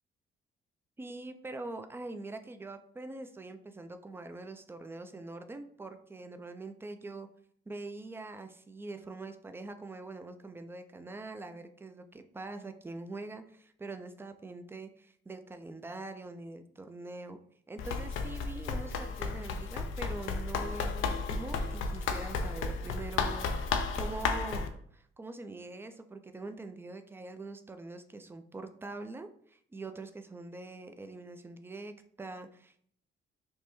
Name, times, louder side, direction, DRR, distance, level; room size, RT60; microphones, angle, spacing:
voice 1, 1.0-7.3 7.7-17.4 17.7-32.8, right 2 dB, 10° right, 8 dB, 0.4 m, -44 dB
Run, 17.8-24.7, left 4 dB, 85° left, 0.5 m, -33 dB
5.2 x 2.1 x 3.1 m, 0.62 s
cardioid pair, 90°, 20 cm